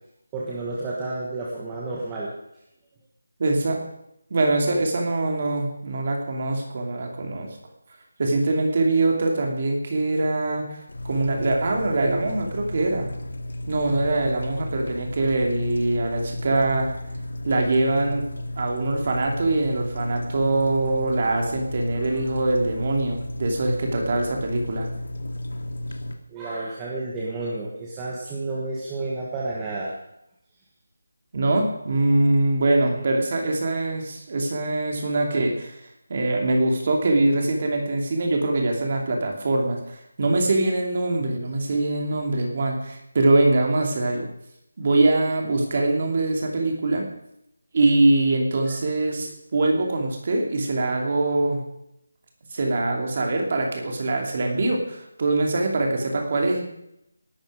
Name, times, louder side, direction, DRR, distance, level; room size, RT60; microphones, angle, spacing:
voice 1, 0.3-2.3 21.9-22.3 26.3-29.9 33.0-33.1 48.7-48.8, right 2 dB, 10° right, -5 dB, 1.4 m, -31 dB
voice 2, 3.4-3.8 4.3-7.5 8.2-10.7 11.1-13.1 13.7-16.9 17.4-18.2 18.6-24.9 31.3-35.7 36.1-44.3 44.8-47.0 47.7-51.6 52.5-56.6, right 2 dB, 30° right, 2 dB, 2.6 m, -23 dB
sound 1, 10.9-26.1, left 1 dB, 70° left, 2.3 m, -34 dB
18.0 x 12.0 x 5.0 m, 0.80 s
figure-of-eight pair, 180°, 0 cm